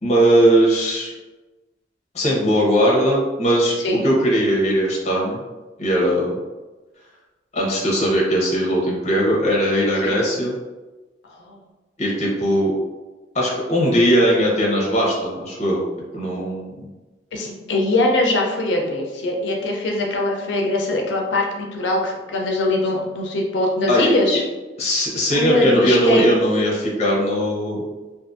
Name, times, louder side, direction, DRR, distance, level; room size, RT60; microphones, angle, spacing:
voice 1, 0.0-1.1 2.1-3.8 4.0-5.4 5.8-6.4 7.5-10.5 12.0-12.7 13.3-15.8 16.1-16.9 23.9-24.1 24.8-27.8, equal, 40° left, -3 dB, 0.7 m, -19 dB
voice 2, 17.3-24.4 25.3-26.3, left 2 dB, 85° left, 0 dB, 0.5 m, -22 dB
2.5 x 2.4 x 2.5 m, 1.2 s
head